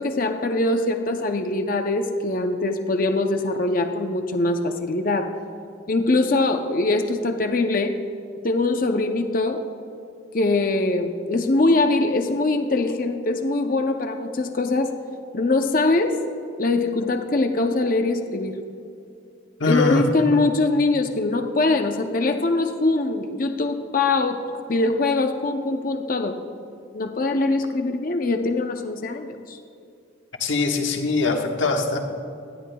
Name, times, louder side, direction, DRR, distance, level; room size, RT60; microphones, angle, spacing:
voice 1, 0.0-5.3 5.9-8.0 8.4-9.6 10.3-14.9 15.3-16.2 16.6-18.6 19.6-24.4 24.7-26.4 26.9-29.6, left 2 dB, 45° left, 6 dB, 0.6 m, -22 dB
voice 2, 19.6-20.0 30.4-32.0, left 3 dB, 80° left, 2 dB, 1.3 m, -22 dB
18.5 x 12.5 x 2.3 m, 2.5 s
head